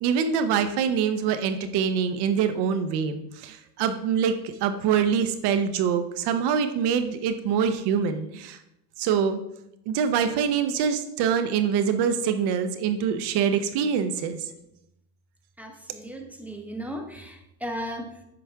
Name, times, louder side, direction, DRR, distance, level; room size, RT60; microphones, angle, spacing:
voice 1, 0.0-8.6 9.0-9.4 9.9-14.5, right 7 dB, 55° right, 9 dB, 0.9 m, -25 dB
voice 2, 15.6-18.2, equal, 5° right, 4 dB, 1.1 m, -36 dB
8.5 x 5.2 x 3.5 m, 0.85 s
hypercardioid pair, 95°, 47 cm